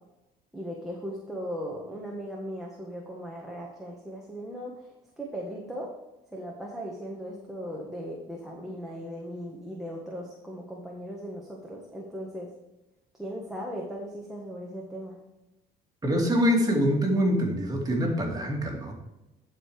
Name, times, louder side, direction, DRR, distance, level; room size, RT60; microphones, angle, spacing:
voice 1, 0.5-4.7 5.2-5.9 6.3-12.5 13.2-15.2, equal, ahead, -3 dB, 1.7 m, -38 dB
voice 2, 16.0-18.9, equal, 20° right, 0 dB, 2.6 m, -25 dB
11.5 x 5.0 x 4.9 m, 0.96 s
cardioid pair, 110°, 17 cm